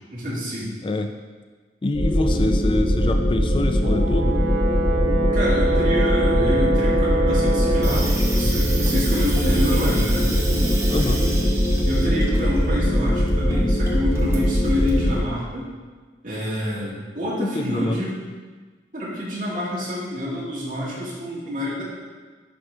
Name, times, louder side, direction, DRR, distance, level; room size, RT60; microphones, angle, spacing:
voice 1, 0.1-0.7 5.3-10.3 11.8-15.7 16.2-18.2 18.9-21.8, equal, 50° right, -7 dB, 2.5 m, -27 dB
voice 2, 1.8-4.4 10.9-11.2 17.4-18.0, left 2 dB, 30° left, 6 dB, 0.3 m, -25 dB
sound 1, 1.9-15.2, equal, 70° left, 1.8 m, -21 dB
Brass instrument, 3.8-8.1, right 2 dB, 70° right, 1.3 m, -25 dB
Water tap faucet / Sink (filling or washing), 7.6-15.2, right 2 dB, 15° right, 0.9 m, -33 dB
11.0 x 5.2 x 3.8 m, 1.4 s
head